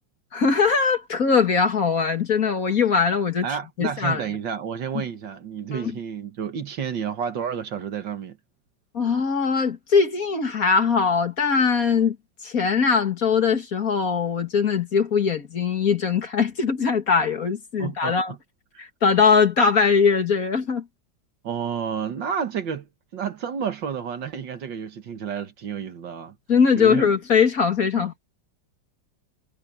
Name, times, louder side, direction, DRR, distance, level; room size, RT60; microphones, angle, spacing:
voice 1, 0.3-3.5 3.8-4.3 5.7-5.9 8.9-12.2 12.4-18.3 18.8-20.8 26.5-28.2, left 5 dB, 45° left, 2.2 m, -21 dB
voice 2, 3.4-8.4 17.8-18.2 21.4-26.4 26.8-27.2 28.0-28.1, right 7 dB, 65° right, 2.0 m, -30 dB
omnidirectional pair, 2.2 m